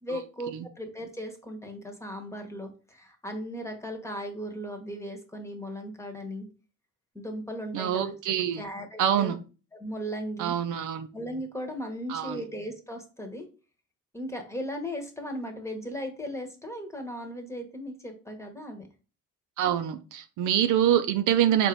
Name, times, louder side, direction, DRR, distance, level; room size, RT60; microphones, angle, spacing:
voice 1, 0.0-6.5 7.1-9.4 9.7-10.5 11.1-13.5 14.1-18.9, equal, 10° left, 4 dB, 1.0 m, -37 dB
voice 2, 7.7-8.6 9.0-9.4 10.4-11.1 12.1-12.4 19.6-21.7, right 10 dB, 80° right, 9 dB, 0.6 m, -25 dB
4.1 x 2.6 x 4.5 m, 0.35 s
cardioid pair, 90°, 30 cm